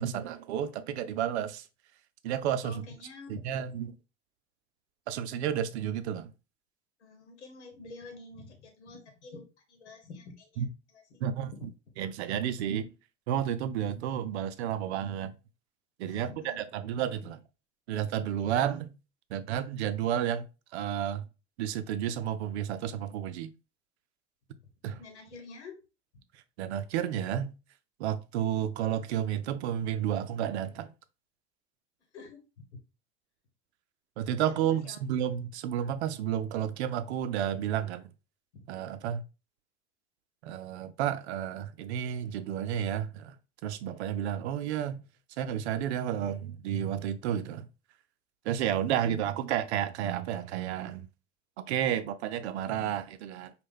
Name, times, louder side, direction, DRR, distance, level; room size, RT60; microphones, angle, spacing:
voice 1, 0.0-1.7 2.2-2.9 3.3-3.9 5.1-6.3 10.6-10.7 11.2-11.5 12.0-12.9 13.3-15.3 16.0-17.4 17.9-18.9 19.3-20.4 20.7-21.3 21.6-23.5 24.8-25.0 26.6-27.5 28.0-30.9 34.2-38.1 38.7-39.2 40.4-43.3 43.6-45.0 45.4-47.7 48.5-51.1 51.6-53.5, right 10 dB, 75° right, 0.6 m, -31 dB
voice 2, 2.6-3.4 7.0-10.6 10.9-11.2 11.5-11.7 16.1-16.6 24.9-25.8 32.1-32.4 34.5-35.0 38.5-38.6, left 3 dB, 90° left, 0.9 m, -48 dB
5.3 x 2.3 x 3.5 m
hypercardioid pair, 75°, 33 cm